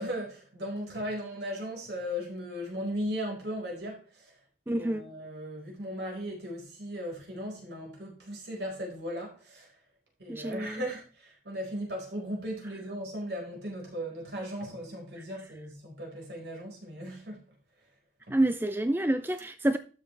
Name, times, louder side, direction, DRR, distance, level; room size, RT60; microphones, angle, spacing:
voice 1, 0.0-4.3 4.7-9.8 10.2-17.4 18.3-18.4, equal, 70° right, 4.6 m, -37 dB
voice 2, 4.7-5.0 10.3-10.8 18.3-19.8, right 1 dB, 10° right, 0.4 m, -28 dB
12.5 x 7.5 x 3.3 m
head